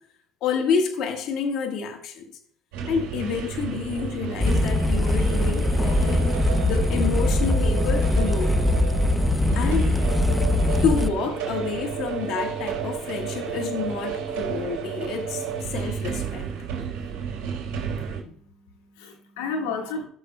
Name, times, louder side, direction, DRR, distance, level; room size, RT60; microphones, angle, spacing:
voice 1, 0.4-2.2 2.9-6.2 6.6-8.6 9.5-10.0 10.8-16.5, left 6 dB, 60° left, 1.4 m, -28 dB
sound 1, 2.7-18.2, right 7 dB, 75° right, 3.9 m, -32 dB
sound 2, 4.4-11.1, left 1 dB, 10° left, 0.6 m, -22 dB
voice 2, 10.3-10.8 18.0-20.1, left 4 dB, 90° left, 1.5 m, -34 dB
18.0 x 6.6 x 2.2 m
supercardioid pair, 95°, 0 cm